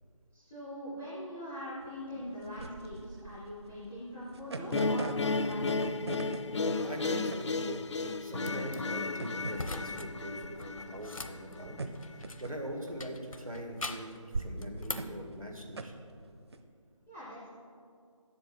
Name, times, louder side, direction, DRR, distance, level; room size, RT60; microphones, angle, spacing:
voice 1, 0.3-5.9 17.1-17.5, equal, 5° right, -12 dB, 0.4 m, -42 dB
sound 1, 1.8-16.6, right 3 dB, 50° right, 0.7 m, -42 dB
sound 2, 4.7-11.8, left 3 dB, 60° left, 0.5 m, -34 dB
voice 2, 6.7-11.8 12.4-15.9, equal, 90° right, 3 dB, 2.0 m, -42 dB
sound 3, 8.4-8.8 9.5-10.1 10.4-12.5 13.0-14.2 14.6-15.2, left 2 dB, 80° left, 0.9 m, -41 dB
7.7 x 7.6 x 7.6 m, 2.3 s
figure-of-eight pair, 160°, 17 cm